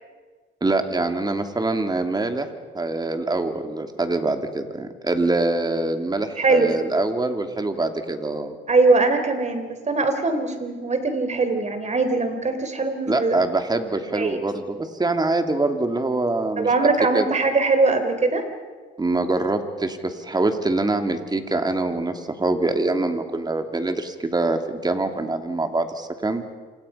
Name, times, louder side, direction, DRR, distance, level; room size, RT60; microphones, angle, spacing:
voice 1, 0.6-2.5 2.7-8.6 13.1-16.9 17.1-17.3 19.0-26.4, right 2 dB, 20° right, 6 dB, 2.7 m, -24 dB
voice 2, 6.4-6.8 8.7-13.4 14.1-14.4 16.6-18.4, right 3 dB, 35° right, 8 dB, 3.7 m, -21 dB
28.0 x 26.0 x 5.7 m, 1.5 s
cardioid pair, 90°, 20 cm